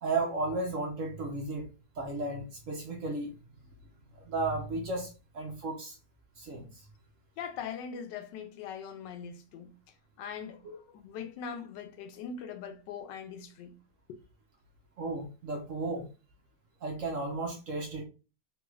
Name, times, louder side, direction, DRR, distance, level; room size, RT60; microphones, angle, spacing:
voice 1, 0.0-1.7 2.0-3.3 4.2-6.0 6.4-6.9 10.6-10.7 15.0-16.1 16.8-18.1, right 2 dB, 65° right, 0.8 m, -34 dB
voice 2, 7.4-9.7 10.2-13.7 14.1-14.2, left 7 dB, 90° left, 1.2 m, -41 dB
3.2 x 2.3 x 3.0 m
omnidirectional pair, 1.9 m